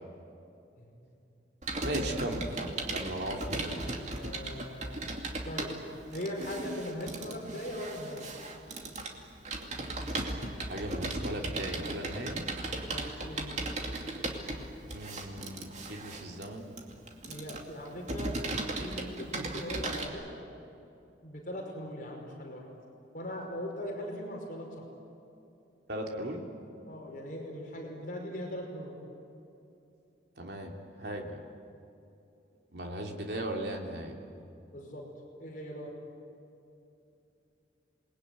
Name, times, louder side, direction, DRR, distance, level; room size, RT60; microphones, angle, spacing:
Computer keyboard, 1.6-20.1, right 2 dB, 40° right, 2.5 m, -37 dB
voice 1, 1.8-3.9 10.6-12.4 14.9-16.7 25.9-26.4 30.4-31.4 32.7-34.2, right 1 dB, 65° right, 1 dB, 3.0 m, -37 dB
voice 2, 4.2-5.0 5.4-5.7 6.1-8.3 12.7-13.6 17.3-18.3 18.8-20.3 21.2-22.6 23.1-24.7 26.9-28.9 34.7-35.0 35.4-35.9, equal, 45° left, 0 dB, 5.2 m, -40 dB
28.0 x 21.0 x 9.5 m, 2.7 s
head